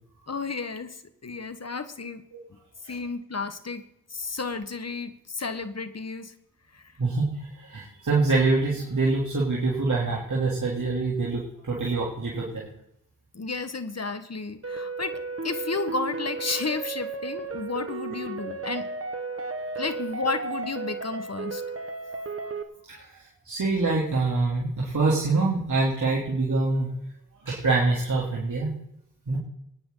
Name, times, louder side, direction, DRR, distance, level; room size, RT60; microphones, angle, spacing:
voice 1, 0.3-2.2 2.9-3.8 4.1-6.3 6.7-6.9 13.3-18.9 19.8-21.6, left 4 dB, 50° left, 10 dB, 1.5 m, -32 dB
voice 2, 7.0-12.7 22.9-23.2 23.4-26.9 27.4-28.7 29.3-29.4, right 3 dB, 65° right, -5 dB, 3.2 m, -25 dB
sound 1, 14.6-22.6, right 3 dB, 45° right, 1.5 m, -34 dB
22.5 x 9.9 x 4.0 m, 0.79 s
cardioid pair, 45°, 32 cm